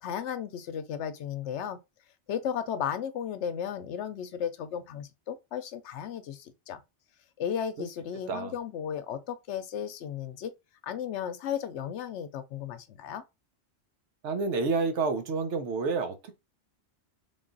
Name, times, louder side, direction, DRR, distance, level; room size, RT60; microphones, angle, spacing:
voice 1, 0.0-1.8 2.3-6.8 7.4-10.5 10.8-13.2, left 8 dB, 80° left, 0.9 m, -34 dB
voice 2, 14.2-16.4, right 4 dB, 80° right, 1.1 m, -29 dB
3.7 x 2.3 x 3.8 m
omnidirectional pair, 1.2 m